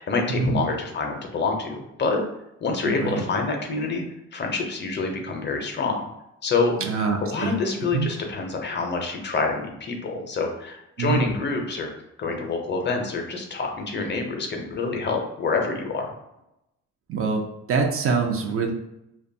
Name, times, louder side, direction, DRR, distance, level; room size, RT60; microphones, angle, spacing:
voice 1, 0.0-2.2 2.6-4.0 4.3-6.0 6.4-6.8 7.2-11.9 12.2-16.1, left 3 dB, 35° left, 2 dB, 0.5 m, -27 dB
voice 2, 2.8-3.3 6.8-7.6 7.9-8.1 11.0-11.2 17.1-18.7, right 4 dB, 45° right, 2 dB, 0.4 m, -25 dB
2.6 x 2.2 x 2.6 m, 0.85 s
cardioid pair, 90°, 30 cm